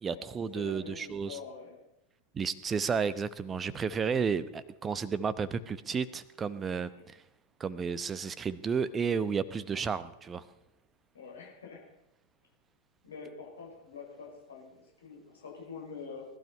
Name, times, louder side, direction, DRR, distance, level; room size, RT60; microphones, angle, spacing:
voice 1, 0.0-1.4 2.3-7.2 7.6-10.4, right 6 dB, 20° right, 15 dB, 0.8 m, -32 dB
voice 2, 0.5-1.8 7.0-7.1 11.1-11.9 13.0-16.3, left 5 dB, 70° left, -2 dB, 5.8 m, -46 dB
20.0 x 12.0 x 5.5 m, 0.85 s
figure-of-eight pair, 90°, 0 cm